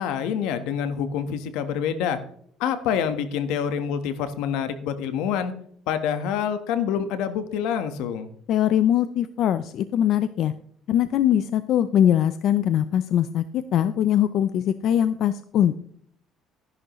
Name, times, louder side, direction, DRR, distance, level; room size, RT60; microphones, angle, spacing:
voice 1, 0.0-2.2 2.6-5.5 5.9-8.3, left 8 dB, 85° left, 10 dB, 1.3 m, -26 dB
voice 2, 8.5-10.5 10.9-15.7, left 10 dB, 60° left, 12 dB, 0.5 m, -22 dB
14.0 x 11.0 x 3.1 m, 0.62 s
cardioid pair, 115°, 0 cm